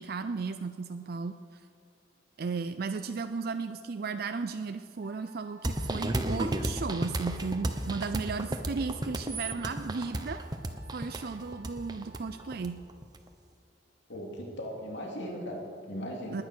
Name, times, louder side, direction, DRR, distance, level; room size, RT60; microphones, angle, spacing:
voice 1, 0.0-1.6 2.4-10.4 10.9-12.8 16.3-16.4, right 4 dB, 55° right, 9 dB, 0.4 m, -35 dB
Wind instrument woodwind instrument, 5.0-12.6, right 3 dB, 5° right, 2.5 m, -55 dB
sound 1, 5.6-13.2, right 1 dB, 20° right, 0.9 m, -33 dB
voice 2, 14.1-16.4, equal, 65° left, 0 dB, 2.8 m, -38 dB
19.5 x 9.6 x 6.4 m, 2.4 s
head